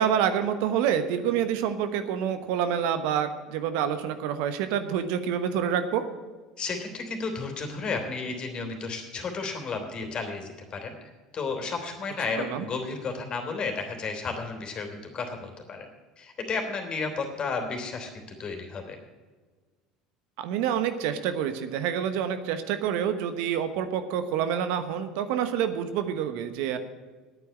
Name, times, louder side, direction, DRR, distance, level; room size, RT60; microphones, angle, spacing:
voice 1, 0.0-6.1 12.4-12.7 20.4-26.8, right 8 dB, 65° right, 10 dB, 1.1 m, -27 dB
voice 2, 6.6-15.9 16.2-18.1 18.4-19.0, left 4 dB, 40° left, 4 dB, 3.1 m, -33 dB
9.6 x 9.3 x 8.5 m, 1.4 s
hypercardioid pair, 70°, 2 cm